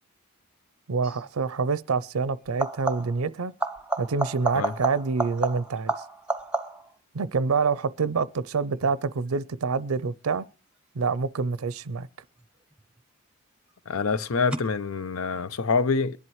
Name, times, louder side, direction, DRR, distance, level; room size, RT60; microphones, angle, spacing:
voice 1, 0.9-3.5 4.0-5.9 7.1-10.4 10.9-12.1, right 4 dB, 90° right, 0.5 m, -27 dB
sound 1, 1.0-1.3 2.5-3.3 3.6-7.0 12.4-13.0 14.5-14.6, right 3 dB, 5° right, 0.8 m, -31 dB
voice 2, 13.9-16.2, left 4 dB, 80° left, 0.7 m, -26 dB
22.5 x 11.0 x 3.1 m
head